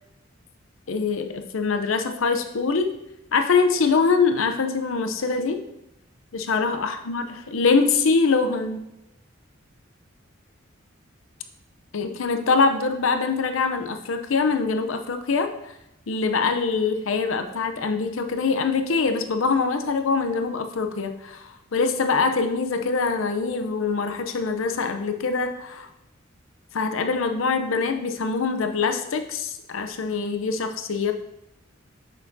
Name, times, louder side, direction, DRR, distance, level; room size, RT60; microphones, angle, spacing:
voice 1, 0.9-2.9 3.3-5.6 6.3-8.9 11.9-15.5 16.1-25.9 26.7-31.1, left 4 dB, 75° left, 7 dB, 0.6 m, -24 dB
6.9 x 5.9 x 2.7 m, 0.86 s
head